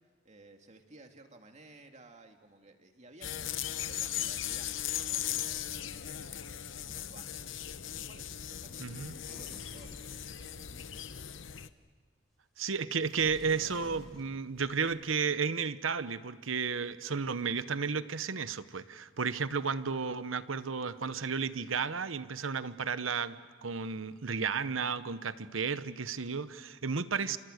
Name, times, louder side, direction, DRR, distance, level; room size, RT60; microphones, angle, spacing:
voice 1, 0.2-4.7 5.0-7.6 8.0-11.5, right 2 dB, 35° right, 4 dB, 2.2 m, -57 dB
sound 1, 3.2-11.7, left 10 dB, 70° left, 0.9 m, -38 dB
voice 2, 8.8-9.1 12.6-27.4, right 5 dB, 90° right, 13 dB, 1.0 m, -33 dB
Sliding door, 9.3-10.8 12.9-15.0, equal, ahead, 5.7 m, -53 dB
30.0 x 27.5 x 6.5 m, 1.4 s
head